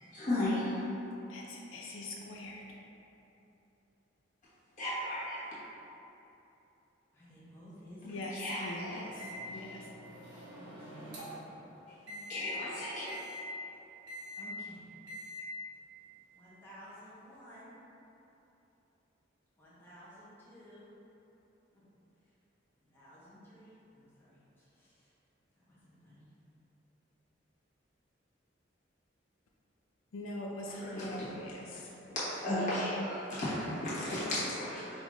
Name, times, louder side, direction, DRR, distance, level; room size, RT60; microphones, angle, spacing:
voice 1, 0.1-0.9 4.8-5.5 8.3-9.0 12.3-13.2 30.7-31.5 32.1-35.0, left 1 dB, 40° left, -10 dB, 1.2 m, -35 dB
voice 2, 1.3-2.8 8.0-9.2 9.5-9.8 30.1-31.9, left 1 dB, 90° left, -1 dB, 0.4 m, -42 dB
voice 3, 7.1-8.3 10.5-11.5 12.1-12.7 14.4-14.9 16.4-17.8 19.6-20.9 21.7-21.8 22.9-25.1 25.7-26.3, equal, 10° left, -10 dB, 0.7 m, -54 dB
Microwave oven, 9.2-11.5 12.1-12.4 13.1-13.4 14.1-14.4 15.1-15.4, left 1 dB, 70° right, 0.9 m, -45 dB
5.2 x 2.4 x 3.1 m, 3.0 s
head